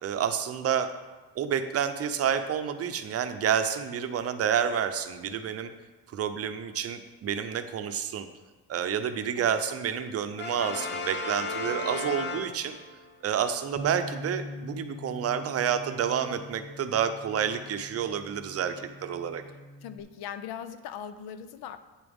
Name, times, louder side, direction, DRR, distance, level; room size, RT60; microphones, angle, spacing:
voice 1, 0.0-0.9 1.4-5.7 6.1-8.3 8.7-12.8 13.2-19.4, right 8 dB, 45° right, 9 dB, 0.6 m, -29 dB
Brass instrument, 10.4-13.0, left 3 dB, 30° left, 0.8 m, -34 dB
Bass guitar, 13.8-20.0, equal, 20° right, 0.9 m, -43 dB
voice 2, 19.8-21.8, left 8 dB, 90° left, 11 dB, 0.6 m, -40 dB
9.0 x 7.0 x 3.5 m, 1.2 s
cardioid pair, 135°, 36 cm